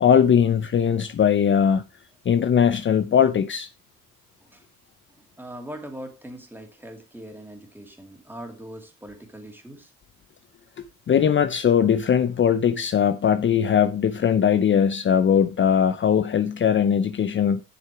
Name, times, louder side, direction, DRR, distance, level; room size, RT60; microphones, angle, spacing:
voice 1, 0.0-1.8 2.3-3.7 11.1-17.6, left 8 dB, 40° left, 0.6 m, -20 dB
voice 2, 5.2-9.9, right 1 dB, 5° right, 2.6 m, -41 dB
8.0 x 6.6 x 4.6 m
cardioid pair, 90°, 30 cm